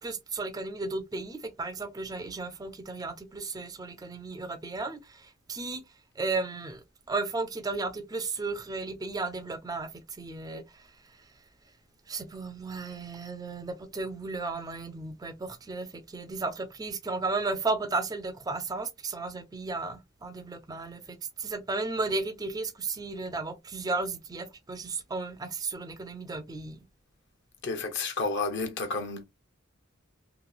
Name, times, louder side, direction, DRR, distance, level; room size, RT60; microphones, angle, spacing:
voice 1, 0.0-5.8 6.2-10.9 12.1-26.8, right 3 dB, 20° right, 0.4 m, -34 dB
voice 2, 27.6-29.2, left 3 dB, 60° left, 0.8 m, -31 dB
3.0 x 2.7 x 2.3 m
head